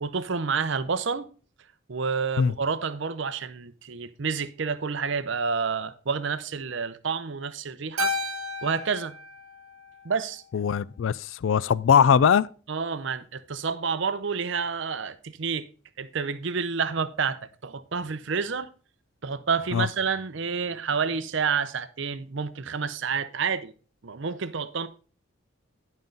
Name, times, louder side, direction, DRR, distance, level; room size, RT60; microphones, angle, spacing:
voice 1, 0.0-1.3 1.9-8.1 8.6-9.2 10.0-10.4 12.7-15.7 16.0-18.7 19.2-23.7 24.0-24.9, right 5 dB, 60° right, 0.6 m, -29 dB
Keyboard (musical), 8.0-10.5, left 2 dB, 85° right, 1.0 m, -33 dB
voice 2, 10.5-12.5 19.7-19.9, left 7 dB, 60° left, 0.3 m, -21 dB
11.0 x 5.4 x 3.9 m
head